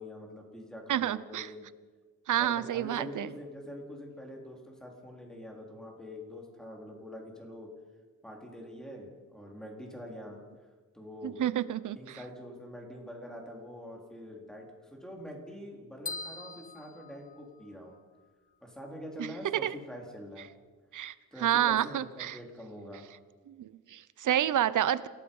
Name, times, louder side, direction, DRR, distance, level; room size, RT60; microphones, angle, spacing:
voice 1, 0.0-1.6 2.4-7.7 8.2-10.4 10.9-11.4 11.9-18.0 18.6-20.5 21.3-23.0, equal, ahead, 0 dB, 3.8 m, -45 dB
voice 2, 0.9-1.5 2.3-3.3 11.2-12.2 19.2-19.7 20.9-22.4 23.5-25.1, right 11 dB, 65° right, 16 dB, 0.8 m, -29 dB
sound 1, 16.1-18.0, left 3 dB, 25° left, 0.9 m, -42 dB
28.0 x 18.0 x 5.5 m, 1.4 s
wide cardioid pair, 165°, 33 cm